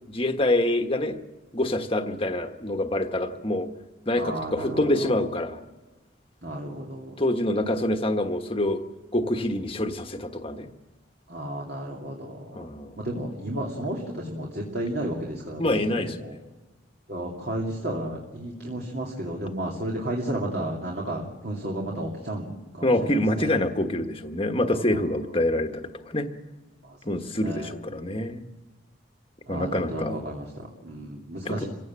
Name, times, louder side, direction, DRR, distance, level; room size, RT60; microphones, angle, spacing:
voice 1, 0.1-1.2 1.5-3.7 4.0-5.6 7.2-8.8 9.1-10.7 12.5-13.0 15.6-16.2 22.8-26.3 27.0-28.4 29.5-30.2 31.4-31.7, left 1 dB, 30° left, 6 dB, 1.4 m, -26 dB
voice 2, 4.1-5.1 6.4-7.2 11.3-12.7 13.0-16.4 17.1-23.6 24.9-25.0 26.8-27.0 27.4-27.8 29.5-31.7, right 1 dB, 50° right, -2 dB, 2.6 m, -33 dB
26.5 x 16.5 x 7.5 m, 1.2 s
head